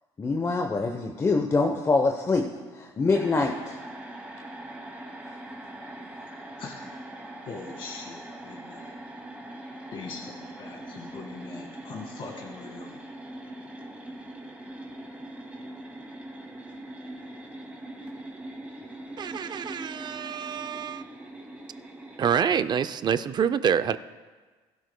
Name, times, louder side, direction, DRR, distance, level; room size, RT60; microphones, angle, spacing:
voice 1, 0.2-3.8, left 3 dB, 25° left, 2 dB, 0.9 m, -25 dB
sound 1, 3.1-22.4, right 1 dB, 10° right, 2.3 m, -42 dB
voice 2, 7.4-8.9 9.9-13.0, left 4 dB, 45° left, -1 dB, 1.9 m, -41 dB
voice 3, 19.2-21.0 22.2-24.0, right 7 dB, 40° right, 13 dB, 0.5 m, -26 dB
21.0 x 12.0 x 2.2 m, 1.4 s
cardioid pair, 110°, 12 cm